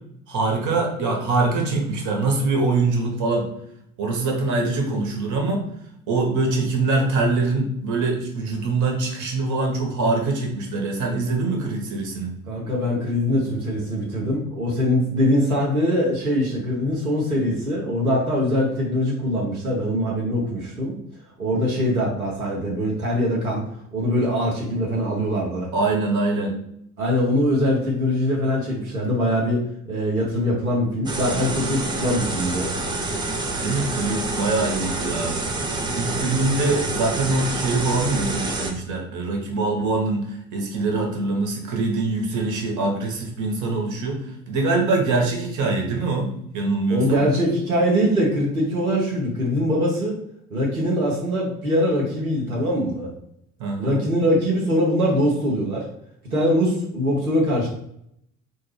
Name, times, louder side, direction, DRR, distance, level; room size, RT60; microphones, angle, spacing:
voice 1, 0.3-3.5 4.0-5.6 6.1-12.3 25.7-26.5 33.6-35.3 36.0-44.2 44.5-46.3 46.5-47.2 53.6-54.0, right 3 dB, 45° right, 2 dB, 1.1 m, -23 dB
voice 2, 12.5-20.9 21.4-23.6 23.9-25.7 27.0-32.7 46.9-50.2 50.5-53.1 53.8-55.9 56.3-57.7, equal, 90° right, -4 dB, 0.8 m, -22 dB
sound 1, 31.1-38.7, right 2 dB, 10° right, 0.4 m, -27 dB
4.3 x 2.2 x 3.2 m, 0.73 s
figure-of-eight pair, 60°, 42 cm